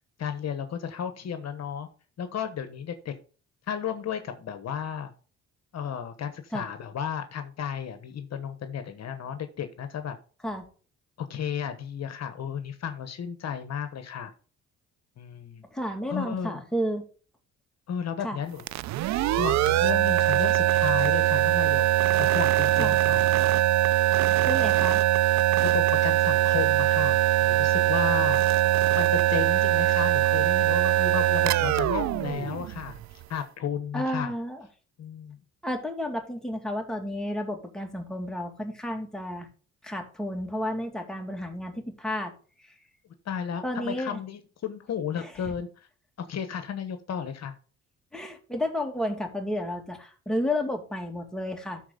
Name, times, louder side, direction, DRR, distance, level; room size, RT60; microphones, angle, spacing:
voice 1, 0.2-1.9 2.2-3.1 3.7-5.1 5.7-10.2 11.2-14.3 15.2-15.6 16.1-16.6 17.9-18.6 19.4-21.9 22.2-23.2 25.6-28.5 28.9-34.3 35.0-35.4 43.2-45.9 46.2-47.5, left 8 dB, 60° left, 9 dB, 1.1 m, -33 dB
voice 2, 15.7-17.0 18.2-18.4 22.8-23.0 24.5-25.0 33.9-34.7 35.6-39.5 39.8-42.3 42.6-42.7 43.6-44.2 45.2-45.3 48.1-51.8, left 1 dB, ahead, 2 dB, 2.4 m, -31 dB
sound 1, 18.6-33.2, right 14 dB, 65° right, 0.4 m, -22 dB
12.5 x 4.3 x 3.8 m, 0.38 s
cardioid pair, 90°, 30 cm